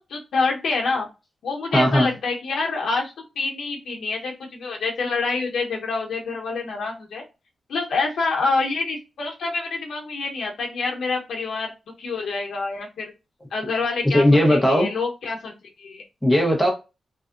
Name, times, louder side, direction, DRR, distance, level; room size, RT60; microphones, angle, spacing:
voice 1, 0.1-1.1 1.4-7.2 7.7-11.7 12.0-13.1 13.5-16.0, left 3 dB, 80° left, 0.9 m, -27 dB
voice 2, 1.7-2.1 14.0-14.9 16.2-16.7, left 1 dB, 5° left, 0.9 m, -17 dB
3.4 x 2.5 x 2.5 m
wide cardioid pair, 150°, 0 cm